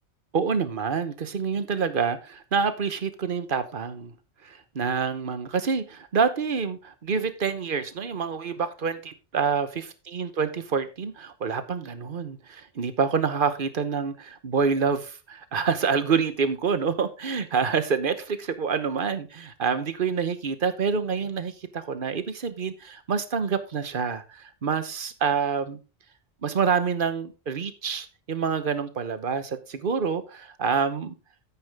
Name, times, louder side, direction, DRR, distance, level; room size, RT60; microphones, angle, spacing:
voice 1, 0.3-4.1 4.4-25.8 26.4-31.1, right 6 dB, 55° right, 1.1 m, -27 dB
9.4 x 8.6 x 3.5 m
omnidirectional pair, 1.1 m